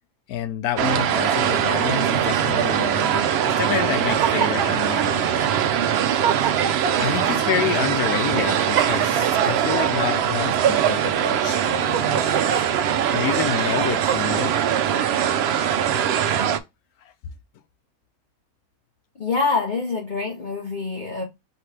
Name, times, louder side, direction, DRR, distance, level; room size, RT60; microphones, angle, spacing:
voice 1, 0.3-5.7 6.9-12.3 13.1-14.5 17.0-17.1, left 10 dB, 85° left, 1.2 m, -28 dB
sound 1, 0.8-16.6, right 9 dB, 70° right, 0.6 m, -22 dB
sound 2, 3.9-5.1 5.7-5.8 6.1-7.1 7.7-7.9 8.3-9.9 10.4-11.1 11.6-12.9 13.4-14.4, right 9 dB, 85° right, 1.2 m, -25 dB
voice 2, 19.2-21.2, left 4 dB, 45° left, 0.7 m, -25 dB
5.0 x 3.2 x 3.2 m
omnidirectional pair, 1.5 m